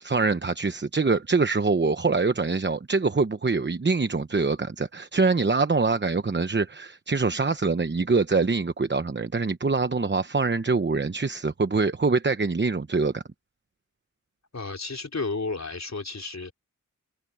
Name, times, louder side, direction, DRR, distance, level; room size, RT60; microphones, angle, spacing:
voice 1, 0.0-13.2, right 4 dB, 35° right, 0.9 m, -24 dB
voice 2, 14.5-16.5, left 3 dB, 55° left, 4.0 m, -32 dB
wide cardioid pair, 75°, 33 cm